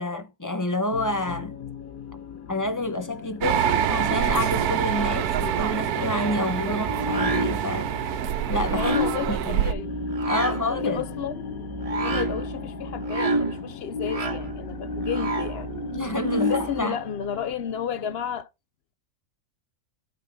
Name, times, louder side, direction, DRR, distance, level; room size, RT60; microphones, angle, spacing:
voice 1, 0.0-1.6 2.5-7.9 8.5-9.0 9.3-9.6 10.3-11.0 15.9-17.0, left 2 dB, 15° left, 0.9 m, -28 dB
sound 1, 0.9-18.4, left 9 dB, 75° left, 1.4 m, -41 dB
sound 2, 3.4-9.7, right 10 dB, 85° right, 1.2 m, -26 dB
sound 3, 6.8-16.8, right 1 dB, 30° right, 0.9 m, -29 dB
voice 2, 8.7-9.9 10.3-11.5 11.9-15.7 16.3-18.5, left 8 dB, 55° left, 0.7 m, -32 dB
13.5 x 5.9 x 3.5 m
omnidirectional pair, 1.6 m